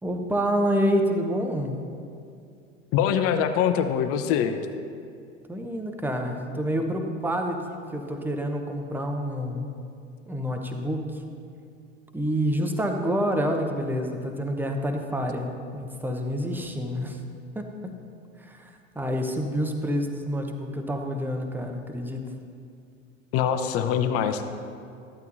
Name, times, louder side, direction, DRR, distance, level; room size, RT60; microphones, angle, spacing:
voice 1, 0.0-1.8 5.5-9.7 10.3-11.2 12.1-17.2 17.5-17.9 18.4-22.3, equal, 5° right, 4 dB, 1.0 m, -28 dB
voice 2, 2.9-4.6 23.3-24.5, left 8 dB, 35° left, 8 dB, 0.7 m, -23 dB
15.5 x 12.0 x 2.7 m, 2.3 s
figure-of-eight pair, 80°, 39 cm